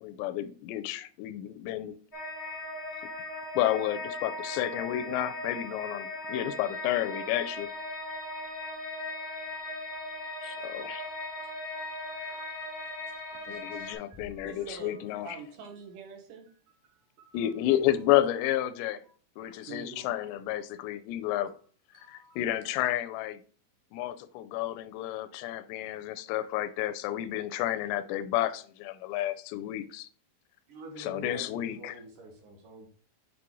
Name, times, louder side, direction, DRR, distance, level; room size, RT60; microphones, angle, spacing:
voice 1, 0.0-2.0 3.6-7.7 10.4-11.1 13.5-15.4 17.3-19.0 19.4-21.5 22.1-23.4 23.9-30.1 31.0-31.9, left 13 dB, 85° left, 2.8 m, -31 dB
sound 1, 2.1-13.9, left 2 dB, 20° left, 0.5 m, -38 dB
voice 2, 10.5-10.8 13.5-13.9 30.7-32.9, right 2 dB, 60° right, 2.4 m, -47 dB
voice 3, 14.0-17.5 19.1-20.3 21.3-21.6 21.9-22.6, right 5 dB, 85° right, 3.5 m, -48 dB
sound 2, 14.1-15.6, left 3 dB, 25° right, 0.7 m, -53 dB
8.3 x 4.8 x 3.0 m
omnidirectional pair, 4.9 m